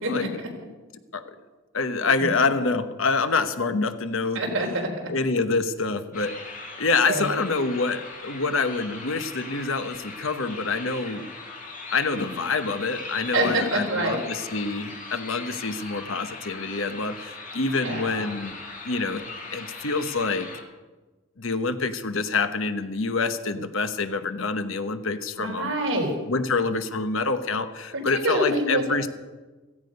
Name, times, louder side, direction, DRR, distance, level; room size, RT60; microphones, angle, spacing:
voice 1, 1.7-4.4 5.1-11.3 11.9-18.6 18.8-19.2 19.5-20.5 21.4-25.7 26.3-29.1, left 4 dB, 65° left, 10 dB, 1.0 m, -26 dB
voice 2, 4.3-4.9 7.0-7.4 13.3-14.2 17.7-18.3 25.4-26.1 28.1-28.8, right 1 dB, 65° right, 0 dB, 4.1 m, -26 dB
sound 1, 6.1-20.6, left 3 dB, 35° left, 2.1 m, -39 dB
16.0 x 15.5 x 5.3 m, 1.3 s
head